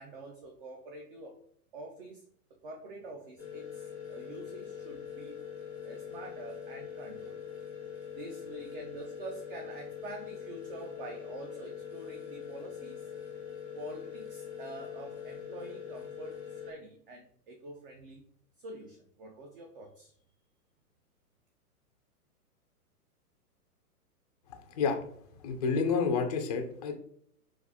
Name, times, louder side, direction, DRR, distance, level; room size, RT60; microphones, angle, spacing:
voice 1, 0.0-1.4 1.7-2.2 2.6-5.4 5.8-7.5 8.1-13.1 13.7-18.2 18.6-20.1, right 2 dB, 35° right, 3 dB, 0.5 m, -46 dB
sound 1, 3.4-16.7, left 8 dB, 5° right, 0.8 m, -43 dB
voice 2, 24.5-25.0 25.4-27.0, left 5 dB, 30° left, 4 dB, 0.4 m, -29 dB
5.8 x 2.5 x 2.7 m, 0.66 s
figure-of-eight pair, 120°, 46 cm